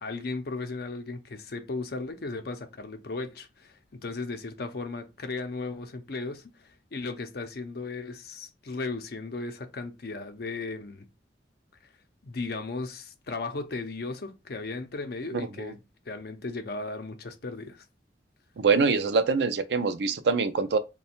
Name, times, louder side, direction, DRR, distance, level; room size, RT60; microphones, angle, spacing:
voice 1, 0.0-11.0 12.2-15.8 16.1-17.9, left 3 dB, 60° left, 0.6 m, -36 dB
voice 2, 15.3-15.7 18.6-20.8, right 4 dB, 70° right, 0.4 m, -24 dB
3.1 x 2.3 x 4.3 m
head